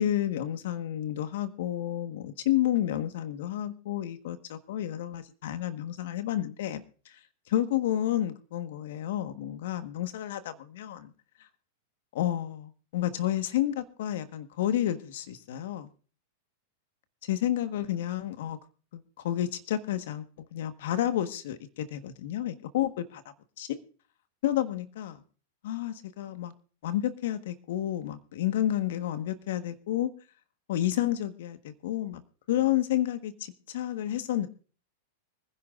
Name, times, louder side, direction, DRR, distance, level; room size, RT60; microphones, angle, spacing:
voice 1, 0.0-7.1 7.5-11.1 12.1-15.9 17.3-18.6 18.9-23.2 23.6-23.8 24.4-25.2 25.6-26.5 26.8-30.1 30.7-32.2 32.5-34.5, left 12 dB, 65° left, 10 dB, 1.3 m, -30 dB
25.0 x 11.0 x 2.5 m, 0.39 s
hypercardioid pair, 105°, 0 cm